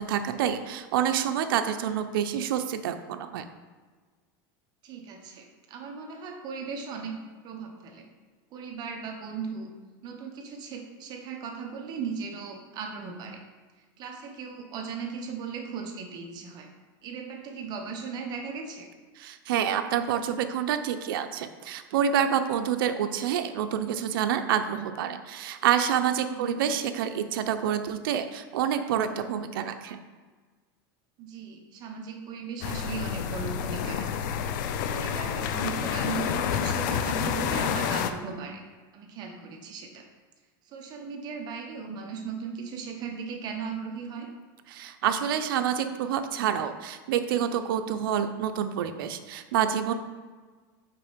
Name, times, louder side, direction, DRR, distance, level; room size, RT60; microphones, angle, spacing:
voice 1, 0.0-3.5 19.2-30.0 44.7-49.9, right 9 dB, 85° right, 8 dB, 0.5 m, -27 dB
voice 2, 4.8-7.2 7.4-8.0 8.5-9.7 10.0-13.4 14.0-16.7 17.0-18.9 26.3-26.6 31.2-34.2 34.9-38.6 38.9-40.1 40.7-44.3, right 5 dB, 40° right, 3 dB, 1.0 m, -37 dB
sound 1, 32.6-38.1, left 8 dB, 65° left, 0.5 m, -29 dB
5.8 x 4.2 x 5.1 m, 1.4 s
supercardioid pair, 145°, 11 cm